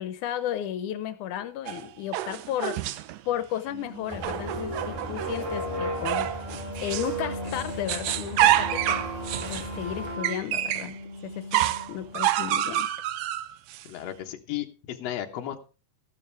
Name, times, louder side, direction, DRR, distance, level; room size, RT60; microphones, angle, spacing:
voice 1, 0.0-2.9 3.3-6.3 6.8-9.1 9.4-11.0 11.2-11.6 11.9-12.9, left 11 dB, 85° left, 11 dB, 2.3 m, -33 dB
sound 1, 1.7-3.2 4.1-5.4 6.1-7.2 7.5-10.9 11.5-13.8, right 13 dB, 75° right, 1.7 m, -28 dB
sound 2, 3.7-12.5, right 1 dB, 50° right, 4.1 m, -36 dB
sound 3, 4.1-10.2, left 2 dB, 10° left, 3.3 m, -41 dB
voice 2, 13.8-15.6, left 12 dB, 65° left, 4 dB, 2.3 m, -34 dB
14.0 x 11.5 x 3.4 m, 0.34 s
omnidirectional pair, 3.4 m